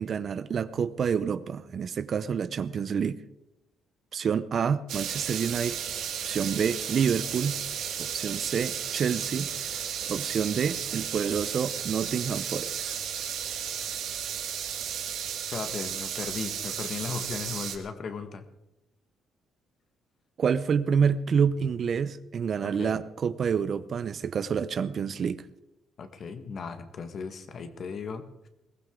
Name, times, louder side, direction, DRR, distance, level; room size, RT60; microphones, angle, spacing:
voice 1, 0.0-3.2 4.1-5.8 6.2-7.6 8.0-9.5 10.1-12.9 20.4-25.4, right 7 dB, 55° right, 14 dB, 0.7 m, -28 dB
sound 1, 4.9-17.8, right 8 dB, 85° right, 1.9 m, -34 dB
voice 2, 15.5-18.4 22.6-23.0 26.0-28.5, left 5 dB, 55° left, 8 dB, 1.6 m, -37 dB
21.5 x 15.5 x 3.8 m, 0.89 s
cardioid pair, 90°, 0 cm